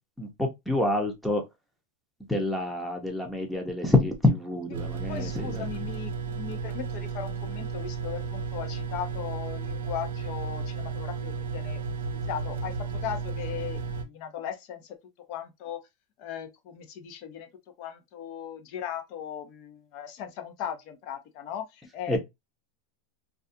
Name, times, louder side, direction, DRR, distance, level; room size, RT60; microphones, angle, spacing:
voice 1, 0.2-1.4 2.3-5.7 22.1-22.2, left 2 dB, 5° left, 0.7 m, -27 dB
sound 1, 4.7-14.0, right 5 dB, 90° right, 0.5 m, -33 dB
voice 2, 5.1-15.8 16.2-17.5 17.8-22.2, left 9 dB, 50° left, 0.6 m, -38 dB
2.3 x 2.3 x 2.6 m
supercardioid pair, 140°, 0 cm